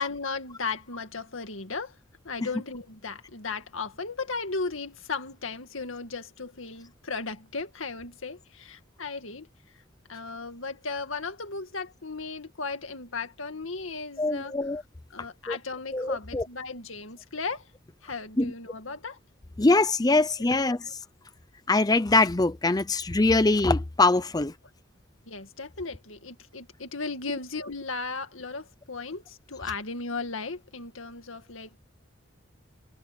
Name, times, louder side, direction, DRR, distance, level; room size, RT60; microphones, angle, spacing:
voice 1, 0.0-2.0 2.2-9.5 10.1-14.6 15.1-17.6 18.0-19.2 20.8-20.9 25.3-31.8, left 4 dB, 90° left, 2.2 m, -36 dB
voice 2, 14.2-14.8 15.5-15.6 15.9-16.5 18.4-18.5 19.6-21.0 21.7-24.5, left 2 dB, 20° left, 0.6 m, -23 dB
head